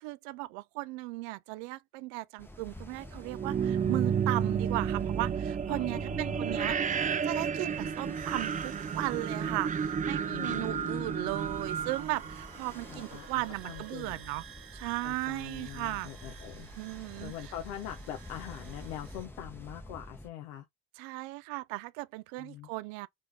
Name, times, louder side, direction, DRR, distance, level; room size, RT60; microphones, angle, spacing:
voice 1, 0.0-14.4 14.7-16.1 16.8-17.3 21.0-23.1, right 20 dB, 75° right, 0.6 m, -36 dB
Ocean, 2.4-20.3, left 1 dB, 5° left, 0.8 m, -49 dB
sound 1, 3.2-13.1, right 7 dB, 20° right, 0.4 m, -32 dB
voice 2, 5.7-6.6 10.3-11.3 12.9-14.2 15.0-16.7 17.2-20.6 22.4-22.7, left 12 dB, 85° left, 0.9 m, -43 dB
sound 2, 8.1-19.3, right 9 dB, 60° right, 1.4 m, -53 dB
3.9 x 3.4 x 3.3 m
hypercardioid pair, 65°, 40 cm